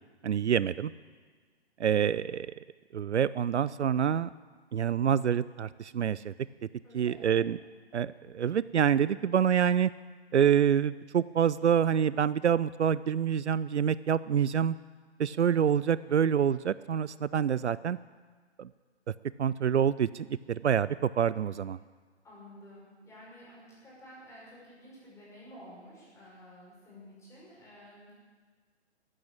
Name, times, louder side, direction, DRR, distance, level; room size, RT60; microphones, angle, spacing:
voice 1, 0.2-0.9 1.8-2.5 2.9-4.3 4.7-6.3 6.9-7.6 7.9-9.9 10.3-14.8 15.2-18.0 18.6-18.7 19.4-21.8, right 8 dB, 75° right, 18 dB, 0.5 m, -26 dB
voice 2, 6.8-7.6 22.2-28.1, equal, 10° left, -6 dB, 5.3 m, -51 dB
14.0 x 8.7 x 8.8 m, 1.5 s
figure-of-eight pair, 130°, 34 cm